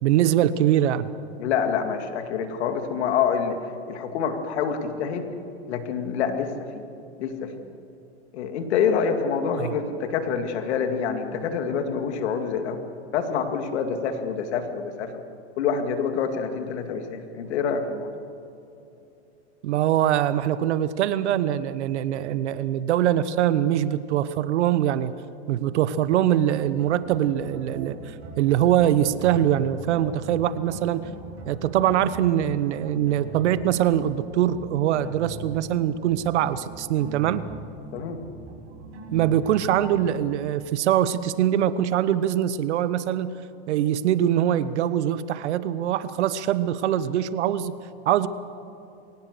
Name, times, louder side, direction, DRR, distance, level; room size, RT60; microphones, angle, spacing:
voice 1, 0.0-1.1 9.6-9.8 19.6-25.1 25.5-31.1 31.5-37.5 39.1-43.3 43.7-47.8 48.0-48.3, right 11 dB, 80° right, 15 dB, 1.0 m, -23 dB
voice 2, 1.4-3.6 3.9-5.3 5.7-6.8 7.2-7.5 8.3-12.8 13.1-15.2 15.6-18.1 37.9-38.2, left 6 dB, 75° left, 7 dB, 2.4 m, -26 dB
sound 1, 26.6-40.1, right 2 dB, 40° right, 6.7 m, -41 dB
23.0 x 18.0 x 6.7 m, 2.8 s
supercardioid pair, 120°, 34 cm